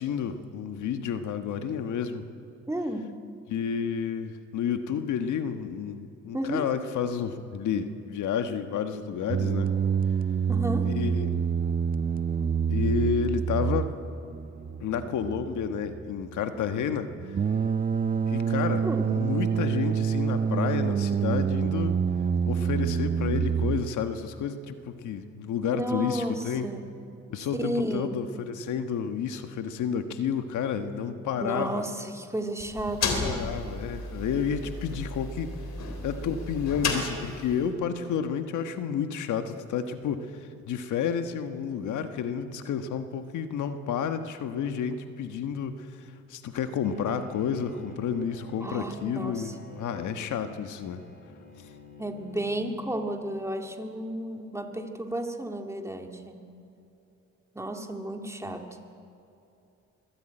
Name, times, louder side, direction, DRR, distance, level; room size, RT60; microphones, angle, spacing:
voice 1, 0.0-2.3 3.5-9.7 10.8-11.3 12.7-13.9 14.8-17.4 18.3-21.9 22.5-26.7 27.3-31.9 33.0-35.6 36.0-51.0 51.6-51.7, left 7 dB, 75° left, 8 dB, 1.4 m, -31 dB
voice 2, 2.7-3.1 6.3-6.7 10.5-10.9 18.8-19.1 25.7-26.9 27.6-28.1 31.4-33.4 48.6-49.5 52.0-56.5 57.5-58.7, right 1 dB, 10° right, 4 dB, 2.2 m, -32 dB
sound 1, 9.3-23.8, right 7 dB, 30° right, 0.6 m, -27 dB
sound 2, 32.6-37.7, left 3 dB, 60° left, 3.7 m, -33 dB
Bowed string instrument, 46.8-53.5, left 2 dB, 30° left, 4.3 m, -49 dB
24.0 x 15.5 x 9.0 m, 2.8 s
cardioid pair, 90°, 30 cm